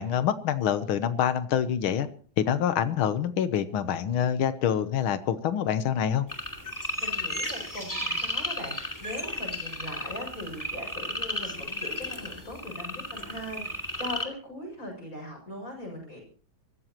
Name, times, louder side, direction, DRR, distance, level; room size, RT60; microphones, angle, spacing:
voice 1, 0.0-2.1 2.4-6.3, left 9 dB, 90° left, 11 dB, 1.8 m, -26 dB
sound 1, 6.3-14.2, left 1 dB, 10° left, 2.3 m, -34 dB
voice 2, 7.0-16.2, left 1 dB, 40° left, 1 dB, 7.4 m, -40 dB
24.5 x 15.5 x 3.0 m, 0.44 s
omnidirectional pair, 2.2 m